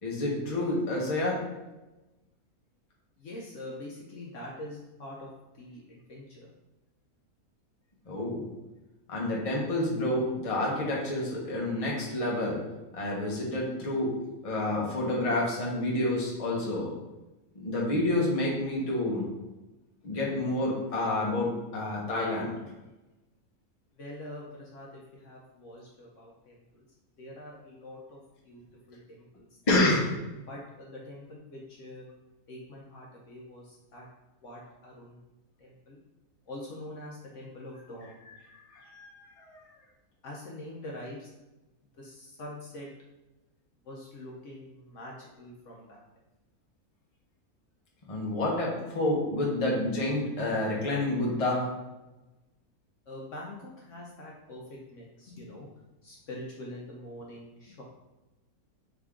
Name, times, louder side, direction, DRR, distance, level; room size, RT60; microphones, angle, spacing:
voice 1, 0.0-1.4 8.1-8.4 9.1-12.6 12.9-14.1 14.4-16.9 17.6-19.3 20.0-22.5 29.7-30.1 38.7-39.6 48.1-51.7, left 1 dB, 30° left, -3 dB, 0.8 m, -29 dB
voice 2, 3.2-6.5 23.9-26.9 27.2-28.2 28.4-29.5 30.5-32.1 32.5-34.1 34.4-35.2 35.6-36.0 36.5-38.2 40.2-41.3 41.9-42.9 43.8-46.0 53.1-55.7 56.0-57.8, left 1 dB, 60° left, -3 dB, 1.0 m, -44 dB
3.7 x 3.5 x 3.5 m, 1.0 s
omnidirectional pair, 1.6 m